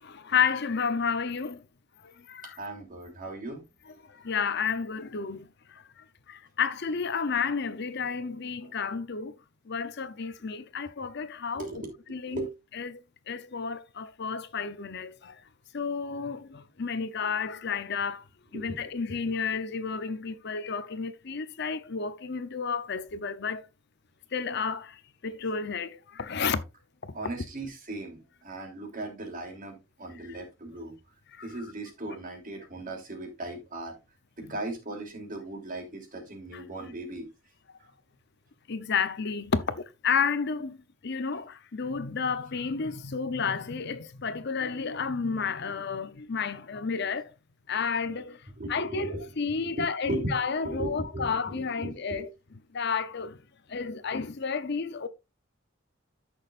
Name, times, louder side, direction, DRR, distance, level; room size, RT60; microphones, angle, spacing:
voice 1, 0.0-1.6 2.0-2.6 4.1-9.4 9.7-11.7 12.1-12.5 12.7-15.4 15.7-18.3 18.5-23.7 24.3-26.6 30.2-30.4 31.3-31.5 36.5-36.6 38.7-47.3 47.7-48.4 48.7-52.3 52.7-53.4 53.7-55.1, left 5 dB, 55° left, 0.7 m, -31 dB
voice 2, 2.6-3.6 8.6-8.7 11.5-11.9 12.3-12.5 18.5-18.8 27.1-31.0 31.4-33.9 34.4-37.3 48.6-49.3 49.7-50.3 50.6-52.3, right 2 dB, 40° right, 3.2 m, -37 dB
14.5 x 6.3 x 2.5 m
head